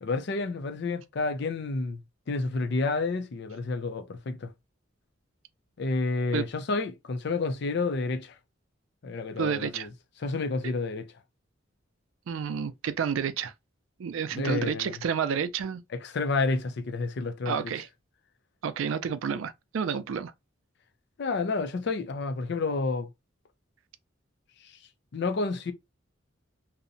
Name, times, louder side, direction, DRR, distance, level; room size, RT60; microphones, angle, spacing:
voice 1, 0.0-2.0 2.3-4.5 5.8-8.3 9.0-9.9 10.2-11.0 14.3-14.9 16.0-17.7 21.2-23.1 25.1-25.7, left 3 dB, 60° left, 0.5 m, -30 dB
voice 2, 9.4-9.9 10.6-10.7 12.3-13.5 14.0-15.8 17.5-17.9 18.6-20.3, right 7 dB, 80° right, 0.4 m, -30 dB
2.7 x 2.1 x 2.5 m
head